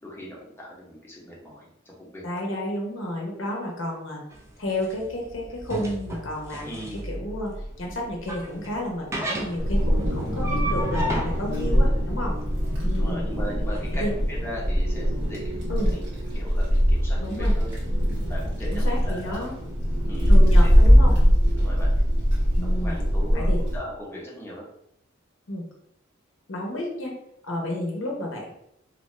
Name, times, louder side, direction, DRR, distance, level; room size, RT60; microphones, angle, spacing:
voice 1, 0.0-2.4 6.6-7.0 12.9-17.7 18.3-19.5 20.1-20.3 20.6-20.7 21.6-21.9 22.6-24.6, equal, 10° left, -5 dB, 0.7 m, -39 dB
voice 2, 2.2-4.2 4.6-7.5 7.8-12.3 12.8-13.2 14.0-14.1 15.7-15.9 17.2-17.5 18.6-19.5 20.3-21.1 22.6-23.0 23.3-23.6 25.5-25.6 26.5-27.1 27.4-28.5, left 1 dB, 65° left, -1 dB, 0.7 m, -31 dB
sound 1, 4.3-13.9, right 1 dB, 15° right, 0.4 m, -34 dB
Wind, 9.6-23.8, equal, 60° right, 1.1 m, -21 dB
2.5 x 2.3 x 3.1 m, 0.76 s
head